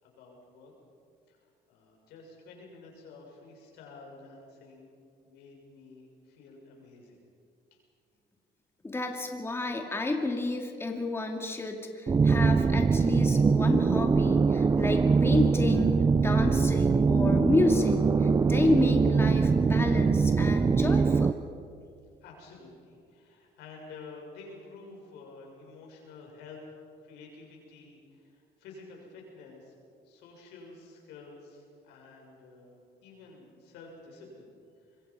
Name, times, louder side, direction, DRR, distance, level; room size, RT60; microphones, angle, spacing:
voice 1, 0.0-0.7 1.3-1.4 1.7-5.0 5.2-7.2 7.7-7.8 22.2-26.6 27.0-29.7 30.0-34.5, left 3 dB, 90° left, 0 dB, 6.6 m, -50 dB
voice 2, 8.8-21.4, left 2 dB, 15° left, 3 dB, 2.3 m, -30 dB
sound 1, 12.1-21.3, right 5 dB, 20° right, 0.5 m, -23 dB
25.5 x 22.5 x 5.5 m, 2.3 s
cardioid pair, 110°, 17 cm